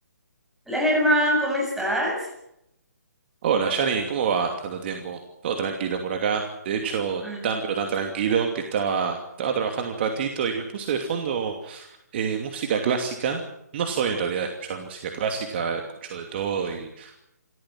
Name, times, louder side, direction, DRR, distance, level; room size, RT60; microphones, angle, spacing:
voice 1, 0.7-2.3 7.2-7.8, equal, 5° right, -2 dB, 7.6 m, -24 dB
voice 2, 3.4-11.9 12.1-13.4 13.7-17.3, right 6 dB, 40° right, 3 dB, 2.7 m, -27 dB
28.0 x 14.0 x 7.7 m, 0.80 s
figure-of-eight pair, 145°, 9 cm